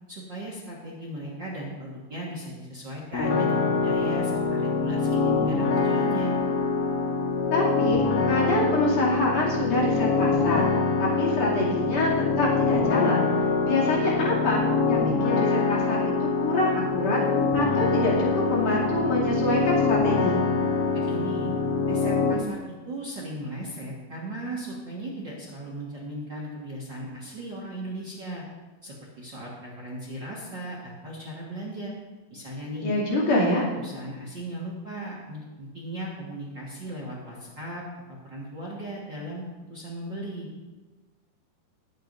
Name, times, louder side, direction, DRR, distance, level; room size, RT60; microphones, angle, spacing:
voice 1, 0.1-6.3 20.9-21.5 21.9-28.4 28.8-31.9 32.3-32.9 33.3-37.8 38.1-39.4 39.7-40.5, right 1 dB, 50° right, -4 dB, 1.3 m, -37 dB
sound 1, 3.1-22.3, left 4 dB, 75° left, 1.3 m, -24 dB
voice 2, 7.5-8.0 8.3-10.7 11.0-12.1 12.4-13.3 13.6-14.6 14.9-17.2 17.5-20.4 32.8-33.6, left 1 dB, 45° left, -5 dB, 3.5 m, -25 dB
20.0 x 8.2 x 2.6 m, 1.2 s
omnidirectional pair, 4.5 m